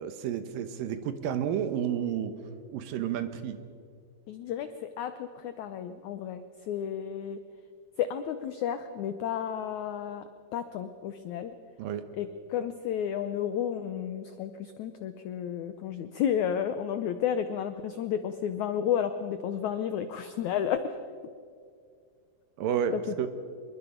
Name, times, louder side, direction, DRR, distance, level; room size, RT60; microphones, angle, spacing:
voice 1, 0.0-2.4 2.7-3.6 11.8-12.1 22.6-23.3, right 9 dB, 70° right, 10 dB, 2.6 m, -31 dB
voice 2, 4.3-7.4 8.0-10.2 10.5-11.6 12.2-21.0 22.9-23.0, left 9 dB, 85° left, 10 dB, 1.6 m, -32 dB
26.0 x 22.0 x 5.2 m, 2.3 s
omnidirectional pair, 4.5 m